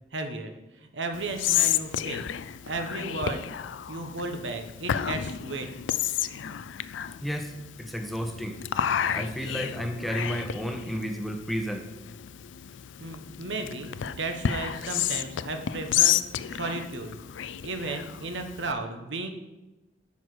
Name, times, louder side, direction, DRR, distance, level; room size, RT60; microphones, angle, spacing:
voice 1, 0.1-0.5 0.9-2.2 2.6-3.5 3.9-5.7 13.0-16.2 16.5-17.2 17.6-19.3, right 2 dB, 80° right, 5 dB, 1.2 m, -34 dB
Whispering, 1.1-18.7, left 10 dB, 85° left, 0.4 m, -31 dB
voice 2, 7.2-8.6 9.1-11.9, equal, ahead, 5 dB, 0.7 m, -32 dB
11.0 x 4.9 x 6.3 m, 1.0 s
head